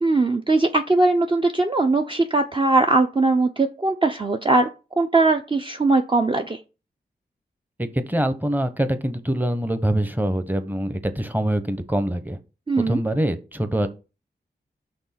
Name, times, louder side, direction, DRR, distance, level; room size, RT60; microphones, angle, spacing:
voice 1, 0.0-4.7 5.0-6.6 12.7-13.0, right 3 dB, 30° right, 4 dB, 0.7 m, -20 dB
voice 2, 7.8-12.4 12.9-13.9, right 1 dB, 10° right, 10 dB, 1.0 m, -24 dB
5.3 x 3.6 x 5.8 m, 0.32 s
cardioid pair, 45°, 18 cm